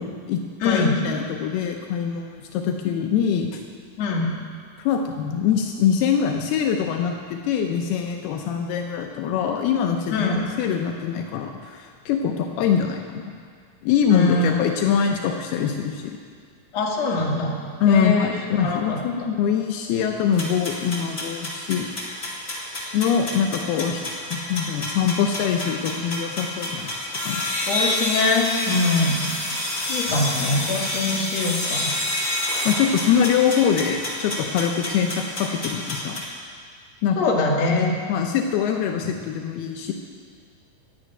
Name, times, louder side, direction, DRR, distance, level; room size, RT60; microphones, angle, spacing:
voice 1, 0.0-3.6 4.8-13.3 13.8-16.2 17.8-21.9 22.9-24.1 24.3-26.9 27.2-27.4 32.7-36.2 37.0-37.3 38.1-39.9, left 7 dB, 80° left, 3 dB, 2.7 m, -23 dB
voice 2, 0.6-1.0 4.0-4.4 10.1-10.4 14.1-14.6 16.7-18.3 18.6-19.0 27.6-31.9 37.2-37.9, left 3 dB, 50° left, -2 dB, 2.7 m, -23 dB
sound 1, 20.3-36.2, left 1 dB, 20° left, 1.8 m, -29 dB
12.0 x 9.8 x 9.1 m, 2.1 s
omnidirectional pair, 4.6 m